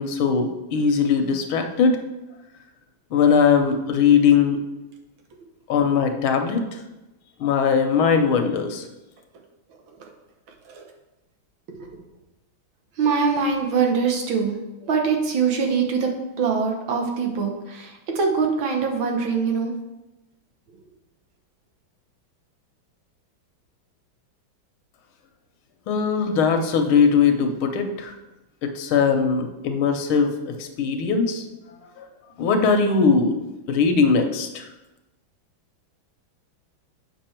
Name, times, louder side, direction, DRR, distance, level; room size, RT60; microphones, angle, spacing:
voice 1, 0.0-2.0 3.1-4.6 5.7-6.8 7.4-8.9 25.9-28.2 28.6-31.4 32.0-32.1 32.4-33.4 33.7-34.7, left 6 dB, 85° left, 6 dB, 1.7 m, -20 dB
voice 2, 13.0-19.7, right 5 dB, 75° right, 2 dB, 1.9 m, -23 dB
7.7 x 5.8 x 4.4 m, 1.0 s
omnidirectional pair, 2.2 m